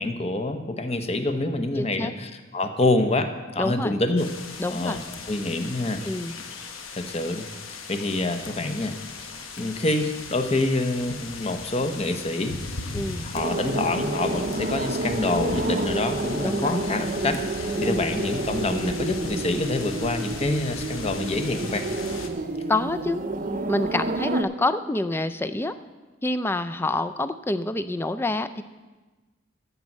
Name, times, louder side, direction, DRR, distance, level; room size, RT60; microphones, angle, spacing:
voice 1, 0.0-4.3 4.7-6.0 7.0-8.9 9.2-21.8, left 2 dB, 30° left, 7 dB, 0.8 m, -27 dB
voice 2, 1.8-2.1 3.6-3.9 4.6-5.0 6.0-6.3 12.9-13.3 16.4-16.8 17.8-18.1 22.7-23.2 23.7-25.7 26.2-28.6, left 2 dB, 10° left, 11 dB, 0.4 m, -27 dB
sound 1, 4.2-22.3, left 4 dB, 85° left, 1.1 m, -38 dB
sound 2, 13.4-24.4, right 2 dB, 40° right, 0.6 m, -29 dB
14.0 x 5.4 x 7.3 m, 1.2 s
head